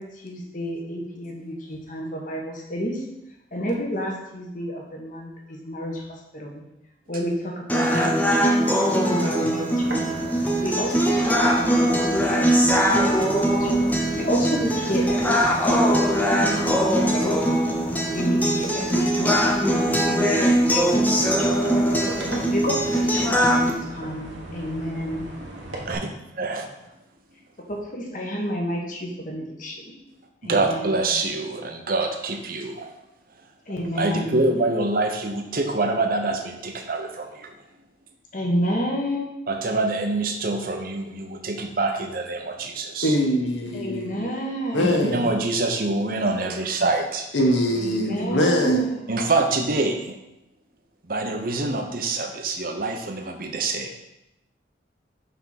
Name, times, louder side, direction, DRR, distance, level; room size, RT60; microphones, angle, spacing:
voice 1, 0.0-3.0 3.5-6.6 7.1-10.0 10.6-17.5 18.1-22.0 22.5-25.3 27.6-29.9 30.4-31.0 33.7-34.4 38.3-39.4 43.7-45.2 47.8-49.1, equal, 45° left, 0 dB, 1.2 m, -31 dB
sound 1, 7.7-23.7, equal, 10° left, 0.7 m, -21 dB
sound 2, 9.8-26.0, right 1 dB, 75° right, 1.3 m, -39 dB
voice 2, 30.4-32.9 34.0-37.5 39.5-43.2 44.8-47.3 49.1-50.2 51.0-54.0, right 2 dB, 50° right, 4 dB, 0.8 m, -25 dB
voice 3, 43.0-44.3 44.7-45.3 47.3-49.0, equal, 80° left, 2 dB, 1.2 m, -22 dB
5.6 x 3.6 x 5.7 m, 0.87 s
head